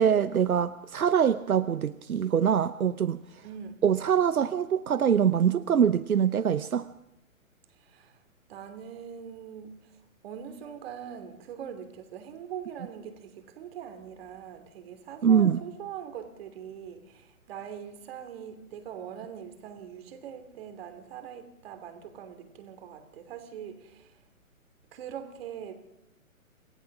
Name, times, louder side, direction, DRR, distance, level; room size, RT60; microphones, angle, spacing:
voice 1, 0.0-3.2 3.8-6.9 15.2-15.6, right 8 dB, 80° right, 0.8 m, -24 dB
voice 2, 3.4-3.8 7.7-8.2 8.5-24.2 24.9-25.8, right 8 dB, 45° right, 3.0 m, -42 dB
27.5 x 16.0 x 6.0 m
figure-of-eight pair, 130°, 42 cm